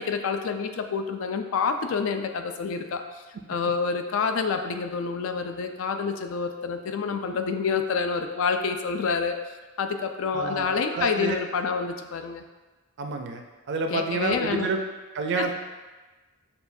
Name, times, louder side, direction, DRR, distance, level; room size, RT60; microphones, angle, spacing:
voice 1, 0.0-3.2 3.5-9.4 9.8-12.4 13.9-14.7 15.4-15.5, left 5 dB, 70° left, 7 dB, 0.4 m, -28 dB
voice 2, 10.3-11.4 13.0-14.8 15.1-15.5, right 3 dB, 55° right, 4 dB, 0.4 m, -29 dB
6.8 x 2.3 x 2.6 m, 1.2 s
head